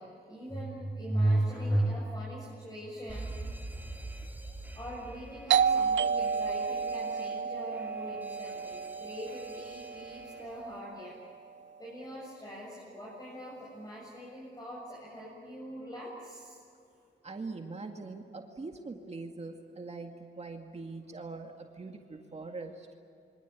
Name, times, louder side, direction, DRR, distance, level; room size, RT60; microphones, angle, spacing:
voice 1, 0.0-3.3 4.8-11.2 11.8-16.6, right 1 dB, 20° left, -4 dB, 7.8 m, -37 dB
Alarm, 3.1-10.8, right 2 dB, 10° right, 2.6 m, -46 dB
Doorbell, 5.5-10.9, right 6 dB, 80° right, 0.6 m, -31 dB
voice 2, 17.2-22.9, right 3 dB, 35° right, 3 dB, 2.1 m, -42 dB
28.0 x 24.5 x 8.4 m, 2.6 s
cardioid pair, 100°, 19 cm